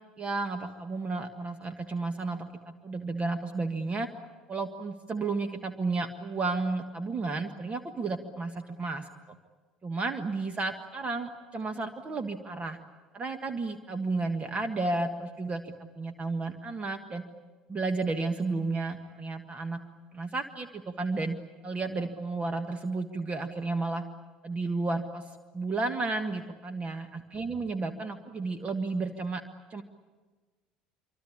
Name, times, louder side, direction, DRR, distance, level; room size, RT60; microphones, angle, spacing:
voice 1, 0.2-4.1 4.5-9.4 9.8-12.8 13.1-17.2 17.7-19.8 20.1-21.4 21.6-24.0 24.4-25.2 25.5-29.4 29.7-29.8, right 3 dB, 30° right, 8 dB, 1.6 m, -32 dB
25.5 x 25.0 x 8.6 m, 1.3 s
figure-of-eight pair, 60°, 4 cm